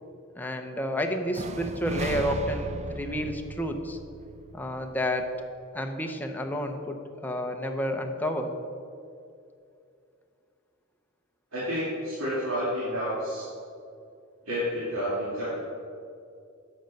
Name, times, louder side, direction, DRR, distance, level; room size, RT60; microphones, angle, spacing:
voice 1, 0.4-4.0 4.5-5.3 5.7-8.5, equal, 10° left, 3 dB, 0.7 m, -30 dB
sound 1, 1.3-5.2, right 3 dB, 30° right, 0.4 m, -36 dB
voice 2, 11.5-13.5 14.5-15.6, equal, 85° right, -9 dB, 2.3 m, -30 dB
10.0 x 6.6 x 5.2 m, 2.5 s
head